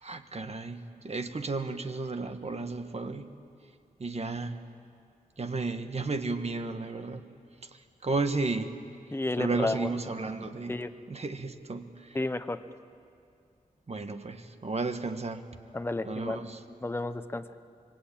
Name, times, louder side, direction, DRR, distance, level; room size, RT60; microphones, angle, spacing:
voice 1, 0.0-3.3 4.0-4.6 5.4-7.2 7.7-8.7 9.4-10.8 11.1-12.2 13.9-15.4 16.0-16.6, right 3 dB, 45° right, 8 dB, 1.4 m, -33 dB
voice 2, 9.1-9.9 10.7-10.9 12.1-12.6 15.7-16.4 16.8-17.5, left 2 dB, 15° left, 10 dB, 0.9 m, -31 dB
26.0 x 23.0 x 8.8 m, 2.4 s
wide cardioid pair, 100°, 14 cm